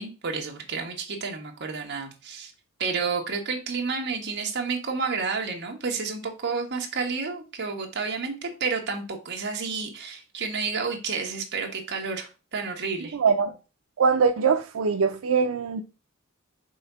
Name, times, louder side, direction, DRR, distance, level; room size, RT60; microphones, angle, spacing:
voice 1, 0.0-2.5 2.8-13.2, right 5 dB, 55° right, 1.5 m, -30 dB
voice 2, 13.1-13.5 14.0-15.8, right 5 dB, 90° right, 0.5 m, -22 dB
5.5 x 3.5 x 5.5 m
head